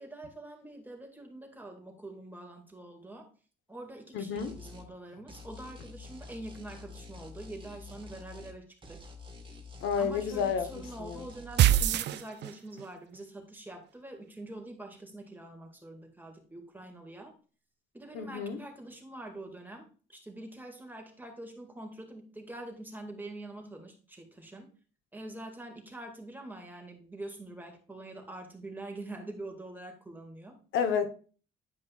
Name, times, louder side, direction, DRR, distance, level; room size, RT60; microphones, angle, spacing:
voice 1, 0.0-3.3 3.7-9.0 10.0-17.3 17.9-24.7 25.1-30.6, right 1 dB, 10° right, 1.9 m, -45 dB
voice 2, 4.1-4.5 9.8-10.7 11.0-11.2 18.1-18.6 30.7-31.1, left 6 dB, 80° left, 1.0 m, -30 dB
sound 1, 4.4-4.9 5.3-8.6 8.8-11.7, left 3 dB, 25° right, 1.4 m, -48 dB
sound 2, 11.6-12.9, right 12 dB, 60° right, 0.4 m, -24 dB
9.8 x 5.2 x 2.4 m
cardioid pair, 90°, 20 cm